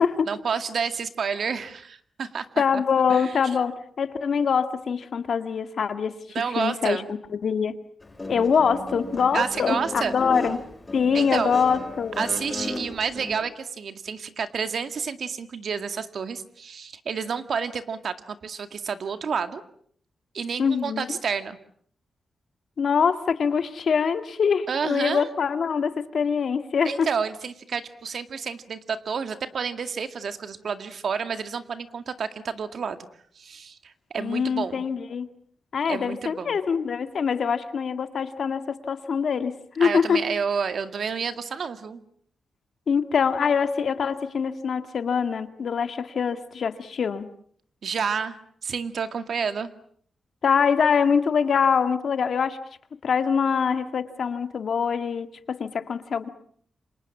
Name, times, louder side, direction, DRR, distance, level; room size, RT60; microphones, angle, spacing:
voice 1, 0.3-2.5 2.7-2.8 3.1-3.3 6.3-7.1 9.3-10.1 11.1-11.6 12.2-19.6 20.3-21.6 24.7-25.3 26.9-33.0 33.4-34.8 35.8-36.6 39.8-42.0 47.8-49.7, right 6 dB, 60° right, 9 dB, 2.1 m, -30 dB
voice 2, 2.6-6.1 6.6-7.0 7.3-7.8 8.3-10.6 10.9-12.3 20.6-21.1 22.8-27.1 34.2-35.3 35.7-40.2 42.9-47.3 50.4-52.6 53.0-56.3, left 6 dB, 60° left, 9 dB, 2.0 m, -24 dB
Guitar, 8.0-13.3, left 1 dB, 20° left, 7.2 m, -34 dB
29.0 x 26.5 x 7.3 m, 0.63 s
wide cardioid pair, 135°, 0 cm